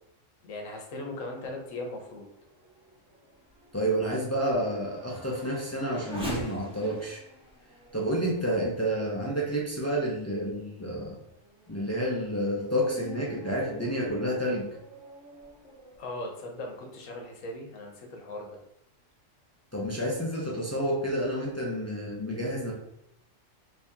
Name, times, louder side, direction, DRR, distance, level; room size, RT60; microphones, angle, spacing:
voice 1, 0.4-2.3 16.0-18.6, left 2 dB, 90° left, 2 dB, 1.2 m, -38 dB
Race car auto racing / Accelerating revving vroom, 2.2-9.9 10.5-10.6 11.2-16.0, equal, 5° right, 0.7 m, -45 dB
voice 2, 3.7-7.2 7.9-11.2 11.7-14.7 19.7-22.7, equal, 20° left, -4 dB, 0.4 m, -29 dB
3.2 x 2.8 x 3.5 m, 0.80 s
omnidirectional pair, 1.3 m